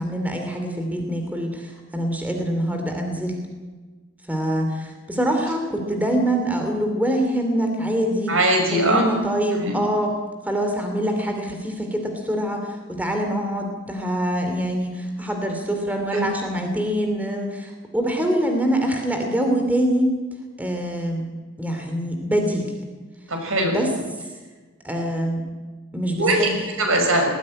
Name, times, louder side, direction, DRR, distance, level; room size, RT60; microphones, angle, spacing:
voice 1, 0.0-3.4 4.3-8.3 8.7-10.1 10.4-20.1 20.6-21.2 21.6-22.7 23.7-23.9 24.8-25.4 25.9-26.6, right 1 dB, 10° right, 3 dB, 2.6 m, -24 dB
voice 2, 8.3-9.1 9.6-9.8 16.1-16.3 23.3-23.9 26.2-27.3, right 1 dB, 85° right, 2 dB, 6.1 m, -21 dB
19.5 x 15.5 x 9.8 m, 1.3 s
head